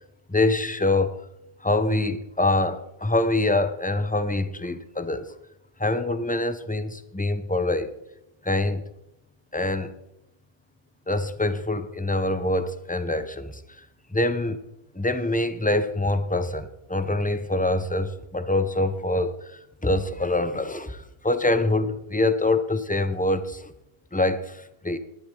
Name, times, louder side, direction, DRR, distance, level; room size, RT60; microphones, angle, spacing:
voice 1, 0.3-1.2 1.6-5.3 5.8-7.9 8.4-8.8 9.5-9.9 11.1-13.8 14.1-14.6 14.9-23.7 24.1-25.0, left 2 dB, 10° left, 11 dB, 0.7 m, -25 dB
18.0 x 12.0 x 3.8 m, 0.83 s
omnidirectional pair, 1.1 m